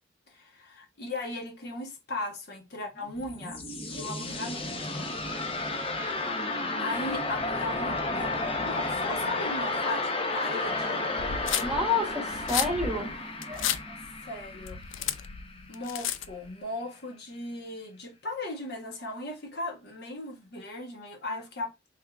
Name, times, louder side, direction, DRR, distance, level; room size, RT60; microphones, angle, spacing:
voice 1, 0.3-3.6 3.9-5.1 6.8-11.0 14.2-14.8 15.7-21.9, left 2 dB, 55° left, 1.0 m, -37 dB
sound 1, 3.0-15.8, left 2 dB, 30° left, 0.6 m, -32 dB
sound 2, 11.2-16.5, left 10 dB, 85° left, 0.4 m, -33 dB
voice 2, 11.3-13.1 13.5-13.7, left 2 dB, 5° right, 0.9 m, -29 dB
3.6 x 3.3 x 2.3 m
head